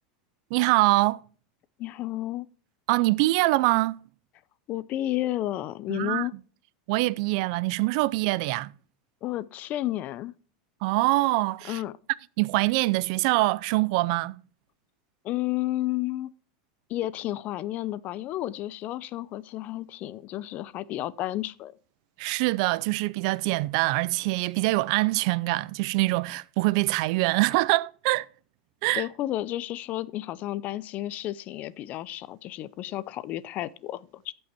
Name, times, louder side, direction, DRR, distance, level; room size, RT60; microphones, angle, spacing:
voice 1, 0.5-1.2 2.9-4.0 5.9-6.3 6.9-8.7 10.8-11.8 12.4-14.4 22.2-28.3 28.8-29.1, right 21 dB, 60° right, 0.4 m, -24 dB
voice 2, 1.8-2.5 4.7-6.3 9.2-10.3 11.7-11.9 15.2-16.3 16.9-21.7 28.9-34.3, left 15 dB, 40° left, 0.5 m, -32 dB
15.0 x 5.5 x 4.3 m
supercardioid pair, 135°, 4 cm